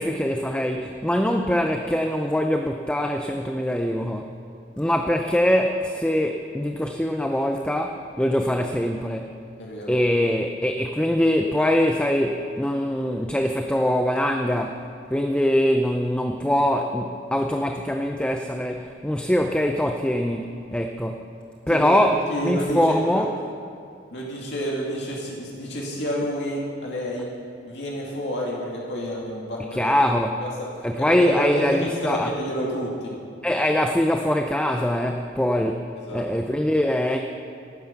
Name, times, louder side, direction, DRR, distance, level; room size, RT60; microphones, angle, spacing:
voice 1, 0.0-4.3 4.8-9.4 9.9-21.3 21.7-23.3 29.7-30.4 30.8-32.3 33.4-37.2, left 1 dB, 5° left, 4 dB, 0.5 m, -23 dB
voice 2, 9.6-9.9 21.7-23.3 24.1-27.3 27.7-30.0 30.4-30.5 31.0-33.1 36.0-36.2, equal, 70° left, -3 dB, 2.4 m, -29 dB
17.5 x 9.2 x 5.9 m, 2.4 s
head